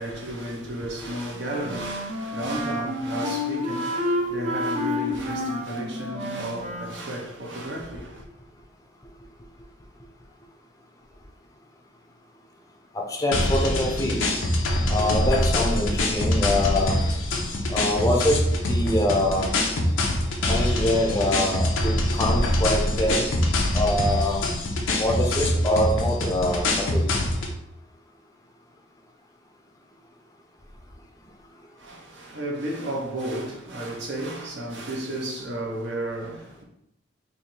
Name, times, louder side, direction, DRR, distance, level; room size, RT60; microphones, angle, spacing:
voice 1, 0.0-8.2 31.8-36.6, right 1 dB, 65° right, 0.9 m, -33 dB
Wind instrument woodwind instrument, 1.3-7.0, left 1 dB, 35° right, 0.6 m, -29 dB
voice 2, 12.9-14.2 14.9-17.0 17.7-19.5 20.5-23.3 23.7-24.4 25.0-27.0, left 1 dB, 20° left, 0.6 m, -24 dB
sound 1, 13.3-27.5, left 1 dB, 90° left, 0.8 m, -24 dB
3.3 x 2.7 x 4.2 m
head